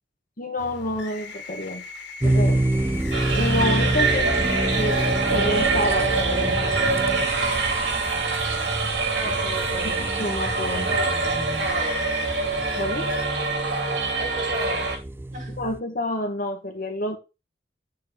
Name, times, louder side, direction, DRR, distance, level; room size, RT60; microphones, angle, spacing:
voice 1, 0.4-1.9 2.2-2.6 3.3-6.8 9.2-9.3 9.8-10.9 12.8-13.1 15.6-17.2, left 1 dB, 50° left, 1.7 m, -29 dB
sound 1, 0.6-13.3, left 4 dB, 70° left, 2.5 m, -39 dB
sound 2, 2.2-15.8, right 1 dB, 15° right, 0.4 m, -28 dB
sound 3, 3.1-15.0, right 4 dB, 75° right, 3.0 m, -25 dB
voice 2, 9.1-10.1 10.7-12.1 14.2-14.9 15.3-15.6, equal, 45° right, 5.5 m, -34 dB
7.7 x 4.5 x 6.1 m
head